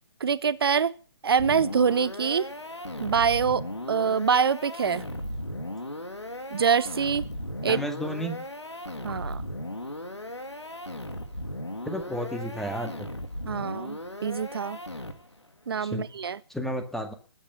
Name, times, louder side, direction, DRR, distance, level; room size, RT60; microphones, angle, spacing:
voice 1, 0.2-0.9 1.2-2.5 3.0-3.6 3.9-5.0 6.5-7.2 7.6-7.8 9.0-9.4 13.4-14.8 15.7-16.4, right 6 dB, 60° right, 1.0 m, -25 dB
sound 1, 1.4-15.4, left 1 dB, 90° left, 2.6 m, -37 dB
voice 2, 7.7-8.4 11.8-13.1 15.8-16.1 16.5-17.1, equal, ahead, 1.9 m, -32 dB
19.5 x 8.9 x 6.9 m
figure-of-eight pair, 135°, 14 cm